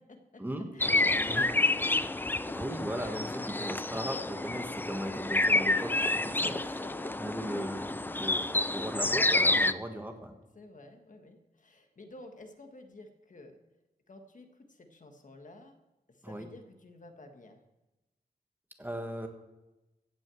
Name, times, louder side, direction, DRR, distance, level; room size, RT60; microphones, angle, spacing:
voice 1, 0.0-2.6 3.4-3.5 6.3-7.2 10.5-13.6 14.1-15.8 16.1-17.6, left 2 dB, 50° left, 5 dB, 1.5 m, -51 dB
sound 1, 0.8-9.7, left 2 dB, 10° left, 0.4 m, -29 dB
voice 2, 2.6-6.5 7.2-10.3 16.2-16.5 18.8-19.3, right 1 dB, 10° right, 4 dB, 1.5 m, -38 dB
16.0 x 6.3 x 7.7 m, 1.0 s
wide cardioid pair, 110°, 16 cm